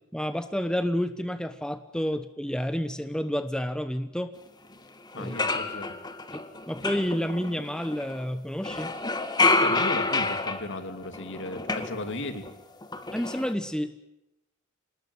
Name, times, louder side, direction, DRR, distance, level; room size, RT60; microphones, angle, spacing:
voice 1, 0.1-4.3 5.1-5.4 6.3-8.9 13.1-13.9, equal, 5° left, 9 dB, 1.0 m, -30 dB
sound 1, 4.7-4.8 5.1-8.2 8.6-12.5 12.8-13.5, left 3 dB, 20° left, 2.1 m, -29 dB
voice 2, 5.1-5.9 9.4-12.5, left 2 dB, 60° left, 7 dB, 2.9 m, -36 dB
27.0 x 19.5 x 9.7 m, 0.87 s
head